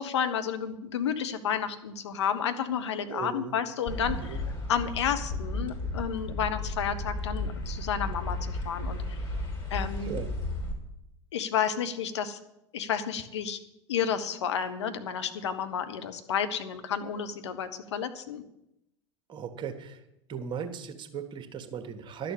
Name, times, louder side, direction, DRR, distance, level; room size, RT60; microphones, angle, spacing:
voice 1, 0.0-4.4 4.7-8.4 8.6-9.2 9.7-10.2 11.3-12.4 12.7-13.6 13.9-18.4, left 8 dB, 70° left, 9 dB, 1.2 m, -31 dB
voice 2, 3.1-3.5 4.1-4.4 10.0-10.3 19.3-20.0 20.3-22.3, right 7 dB, 30° right, 7 dB, 1.6 m, -37 dB
sound 1, 3.9-10.7, left 2 dB, 30° left, 3.4 m, -34 dB
11.5 x 6.8 x 8.7 m, 0.85 s
figure-of-eight pair, 80°, 15 cm